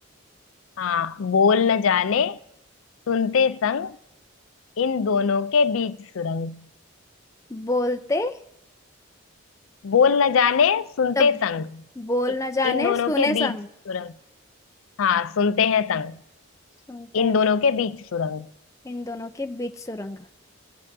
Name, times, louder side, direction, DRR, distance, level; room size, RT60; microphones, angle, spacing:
voice 1, 0.8-2.4 3.1-4.0 4.8-6.7 9.8-11.8 12.6-13.5 13.9-14.1 15.0-16.2 17.1-18.5, left 6 dB, 75° left, 0.4 m, -22 dB
voice 2, 7.5-8.3 11.2-11.4 12.0-13.7 16.9-17.3 18.8-20.2, left 2 dB, 15° left, 0.5 m, -27 dB
22.0 x 7.6 x 2.7 m
head